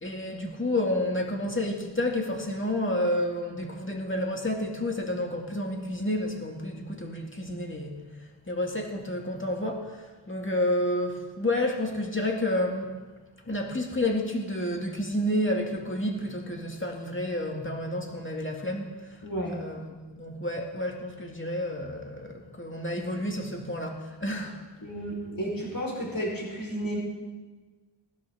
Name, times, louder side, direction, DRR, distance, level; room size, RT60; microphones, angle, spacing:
voice 1, 0.0-7.9 8.5-9.9 10.3-12.9 13.5-18.9 19.4-24.6, left 1 dB, 25° left, 1 dB, 2.2 m, -30 dB
voice 2, 19.2-19.6 24.8-27.0, equal, 45° left, -3 dB, 4.4 m, -32 dB
19.5 x 12.0 x 3.7 m, 1.3 s
wide cardioid pair, 60°, 46 cm